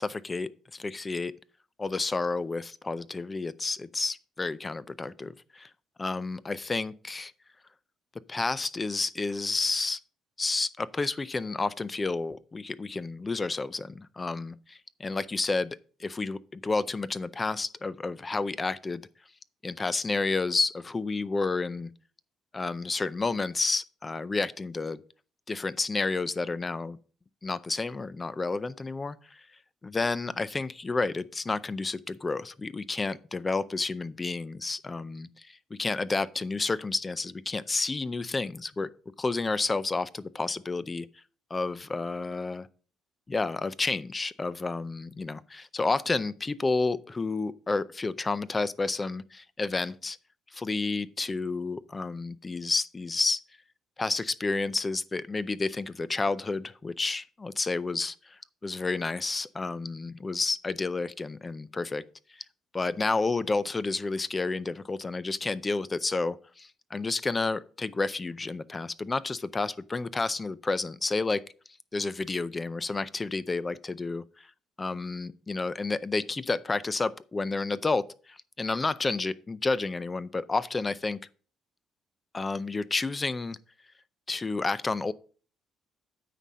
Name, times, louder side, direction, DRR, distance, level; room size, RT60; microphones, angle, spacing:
voice 1, 0.0-1.3 1.8-5.7 6.0-7.3 8.3-10.0 10.4-19.0 19.6-21.9 22.5-25.0 25.5-27.0 27.4-29.4 29.8-38.9 39.2-41.1 41.5-42.7 43.3-50.2 50.5-53.4 54.0-62.0 62.3-62.4 62.7-71.5 71.9-74.5 74.8-81.2 82.3-83.6 84.3-85.1, left 3 dB, 20° left, 0.4 m, -30 dB
9.1 x 4.2 x 6.1 m
cardioid pair, 110°, 0 cm